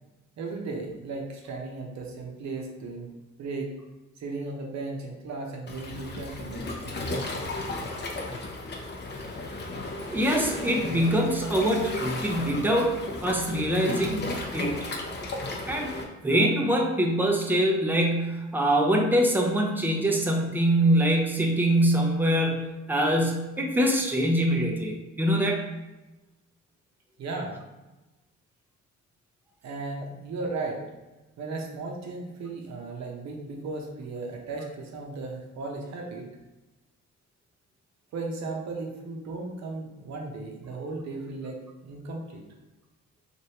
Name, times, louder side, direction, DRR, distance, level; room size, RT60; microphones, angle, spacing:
voice 1, 0.4-3.1 3.4-3.7 4.2-7.3 27.2-27.6 29.6-30.8 31.4-36.3 38.1-42.4, right 3 dB, 65° right, 1 dB, 0.8 m, -36 dB
Waves surf, 5.7-16.0, left 2 dB, 35° left, 0.6 m, -34 dB
voice 2, 10.1-14.9 15.7-16.0 16.2-25.6, right 1 dB, 5° right, 0 dB, 0.5 m, -24 dB
3.1 x 2.5 x 2.8 m, 1.1 s
cardioid pair, 90°, 30 cm